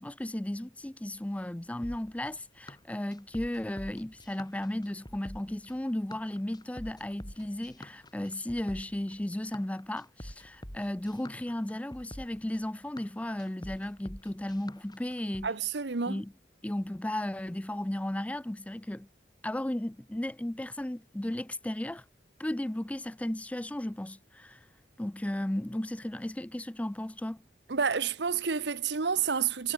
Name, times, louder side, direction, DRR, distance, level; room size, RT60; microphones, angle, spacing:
voice 1, 0.0-15.5 16.1-16.3 16.6-19.1 19.4-22.0 22.4-24.6 25.0-27.4, left 1 dB, 10° left, 0.4 m, -35 dB
sound 1, 1.8-15.5, left 1 dB, 25° left, 5.2 m, -47 dB
voice 2, 15.4-16.2 27.7-29.7, right 6 dB, 70° right, 1.0 m, -29 dB
head